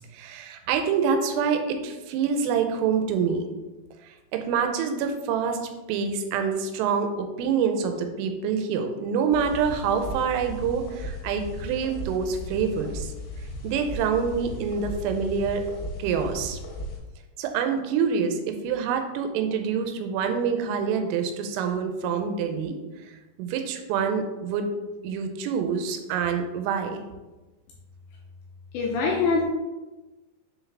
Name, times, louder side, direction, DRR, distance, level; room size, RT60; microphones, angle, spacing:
voice 1, 0.1-3.5 4.0-5.6 5.9-13.1 13.6-15.6 16.0-16.6 17.4-22.8 23.0-23.1 23.4-24.7 25.0-27.0, right 6 dB, 90° right, 6 dB, 3.2 m, -26 dB
sound 1, 9.3-17.0, left 1 dB, 65° left, 3.1 m, -36 dB
voice 2, 28.7-29.4, left 4 dB, 80° left, -1 dB, 2.6 m, -23 dB
7.1 x 4.7 x 3.3 m, 1.1 s
omnidirectional pair, 5.7 m